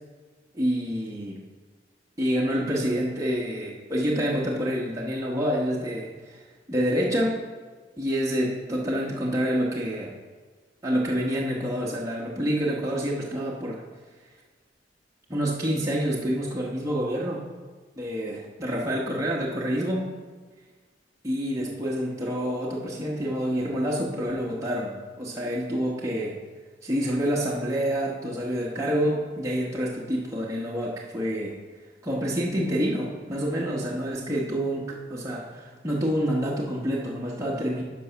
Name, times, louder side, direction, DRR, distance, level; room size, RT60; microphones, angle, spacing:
voice 1, 0.5-1.4 2.2-6.4 6.7-7.4 8.0-10.1 10.8-13.8 15.3-17.4 18.0-20.0 21.2-26.4 26.8-31.6 32.0-37.8, equal, 15° right, -4 dB, 1.0 m, -27 dB
10.5 x 5.4 x 5.7 m, 1.4 s
head